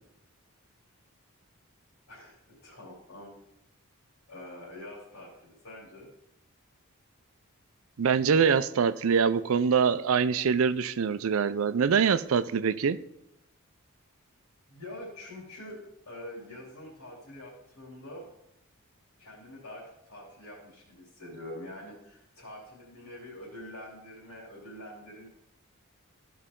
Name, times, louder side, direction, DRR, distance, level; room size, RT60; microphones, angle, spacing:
voice 1, 2.1-3.3 4.3-6.1 14.7-18.3 19.2-25.3, left 1 dB, 75° left, 3.2 m, -45 dB
voice 2, 8.0-13.0, right 6 dB, 70° right, 0.4 m, -24 dB
14.5 x 5.5 x 3.7 m
head